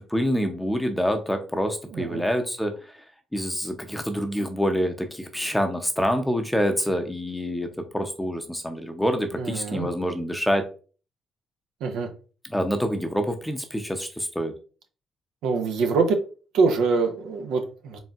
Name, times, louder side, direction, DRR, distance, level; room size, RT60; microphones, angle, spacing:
voice 1, 0.1-2.7 3.3-10.7 12.5-14.5, equal, 5° left, 6 dB, 0.6 m, -26 dB
voice 2, 1.9-2.2 9.4-9.9 11.8-12.1 15.4-16.2 16.5-18.0, right 4 dB, 90° right, 4 dB, 0.7 m, -24 dB
4.2 x 3.6 x 2.4 m, 0.37 s
cardioid pair, 90°, 0 cm